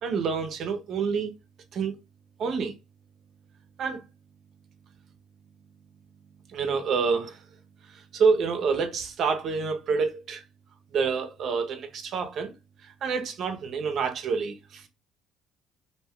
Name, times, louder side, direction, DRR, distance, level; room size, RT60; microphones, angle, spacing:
voice 1, 0.0-1.3 1.7-1.9 2.4-2.7 3.8-4.0 6.5-7.4 7.9-10.4 10.9-12.5 12.8-14.9, right 5 dB, 60° right, 0.6 m, -27 dB
2.6 x 2.2 x 3.4 m
supercardioid pair, 80°, 0 cm